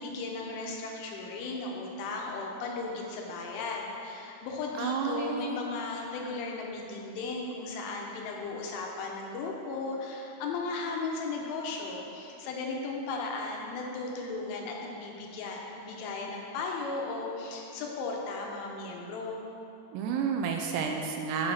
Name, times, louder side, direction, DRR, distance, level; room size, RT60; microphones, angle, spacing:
voice 1, 0.0-19.4, left 3 dB, 85° left, 0 dB, 3.4 m, -36 dB
voice 2, 4.8-5.6 19.9-21.5, right 6 dB, 85° right, 2 dB, 2.7 m, -31 dB
8.8 x 4.4 x 5.8 m, 2.9 s
omnidirectional pair, 5.3 m